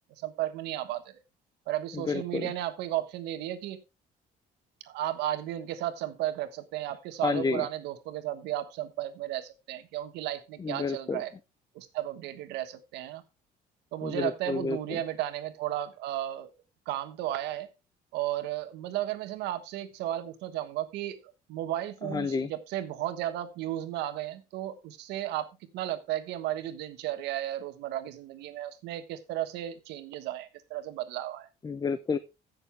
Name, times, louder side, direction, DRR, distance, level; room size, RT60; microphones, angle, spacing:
voice 1, 0.2-1.1 1.7-3.8 4.9-11.3 11.7-13.2 13.9-16.5 16.9-17.7 18.1-21.2 21.5-25.5 25.7-31.5, right 13 dB, 90° right, 10 dB, 1.3 m, -34 dB
voice 2, 1.9-2.5 7.2-7.7 10.6-11.2 14.0-15.0 22.0-22.5 31.6-32.2, left 5 dB, 25° left, 13 dB, 0.6 m, -30 dB
15.0 x 6.7 x 3.3 m, 0.27 s
cardioid pair, 110°, 17 cm